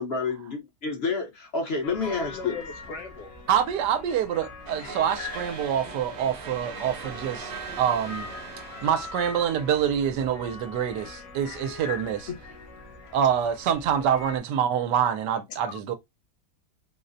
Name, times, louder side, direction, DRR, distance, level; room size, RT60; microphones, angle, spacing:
voice 1, 0.0-2.6, left 4 dB, 50° left, 0.8 m, -29 dB
sound 1, 1.8-14.4, left 4 dB, 65° left, 1.1 m, -42 dB
voice 2, 2.1-3.3 15.7-15.8, left 4 dB, 85° left, 1.6 m, -39 dB
voice 3, 3.5-7.5 7.8-8.3 8.8-12.3 13.1-15.9, right 9 dB, 75° right, 1.2 m, -26 dB
sound 2, 4.7-10.1, right 5 dB, 50° right, 0.6 m, -40 dB
3.9 x 2.0 x 2.5 m
omnidirectional pair, 1.9 m